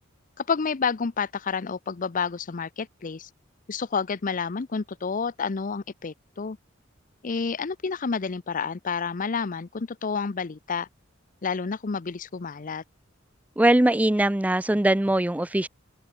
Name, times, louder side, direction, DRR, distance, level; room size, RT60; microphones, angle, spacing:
voice 1, 0.4-3.3 3.7-6.6 7.2-10.9 11.4-12.8, left 5 dB, 45° left, 0.6 m, -29 dB
voice 2, 13.6-15.7, right 1 dB, 10° right, 0.4 m, -21 dB
head